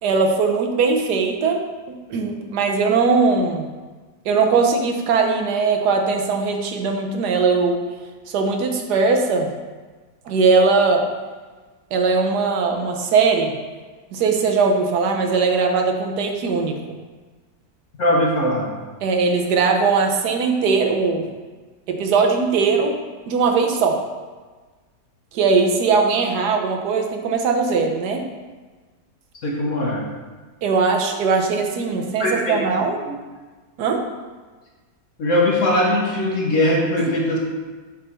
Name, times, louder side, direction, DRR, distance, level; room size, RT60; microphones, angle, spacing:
voice 1, 0.0-3.7 4.2-7.8 8.3-9.5 10.3-11.1 11.9-13.5 14.1-16.8 19.0-21.3 21.9-22.9 23.3-24.0 25.3-28.2 30.6-33.0 33.8-34.0 37.0-37.1, right 4 dB, 70° right, 3 dB, 1.4 m, -20 dB
voice 2, 18.0-18.7 29.4-30.0 31.5-31.6 32.2-32.6 33.0-33.1 35.2-37.4, left 1 dB, 50° left, -3 dB, 1.5 m, -20 dB
7.0 x 4.1 x 5.6 m, 1.3 s
omnidirectional pair, 1.8 m